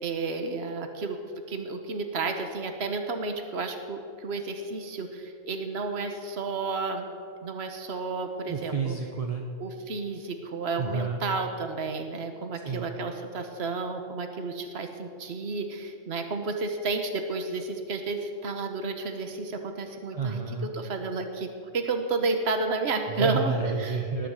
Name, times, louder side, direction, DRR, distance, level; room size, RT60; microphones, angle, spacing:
voice 1, 0.0-1.2 1.5-7.1 7.4-9.0 9.6-20.4 20.7-21.5 21.7-24.1, right 3 dB, 65° right, 6 dB, 1.4 m, -31 dB
voice 2, 8.5-9.4 10.8-11.2 12.6-12.9 20.1-20.7 23.1-24.3, right 5 dB, 35° right, 2 dB, 0.9 m, -30 dB
18.5 x 6.6 x 8.0 m, 2.4 s
omnidirectional pair, 1.1 m